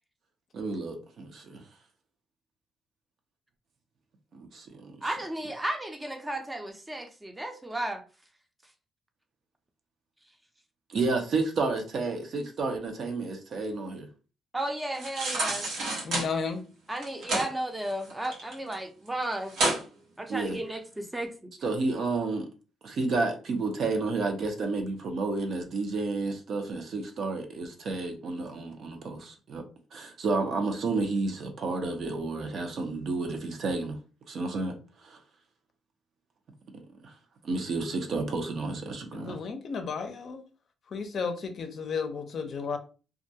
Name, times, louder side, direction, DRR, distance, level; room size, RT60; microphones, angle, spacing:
voice 1, 0.5-1.6 4.3-5.0 10.9-14.1 20.3-20.6 21.6-22.5 22.8-29.6 29.9-34.0 34.3-34.7 35.0-35.2 37.4-39.4, right 3 dB, 60° right, 0.6 m, -31 dB
voice 2, 5.0-8.0 14.5-15.7 16.9-19.5 20.2-21.3, right 1 dB, 10° right, 0.6 m, -34 dB
sound 1, 14.9-16.3 17.0-17.5 17.9-18.7 19.1-19.2 19.5-19.8 20.3-20.4, right 2 dB, 80° right, 1.0 m, -29 dB
voice 3, 16.0-16.6 39.1-40.4 40.9-42.8, left 5 dB, 55° left, 0.5 m, -33 dB
2.4 x 2.2 x 2.7 m
cardioid pair, 90°, 0 cm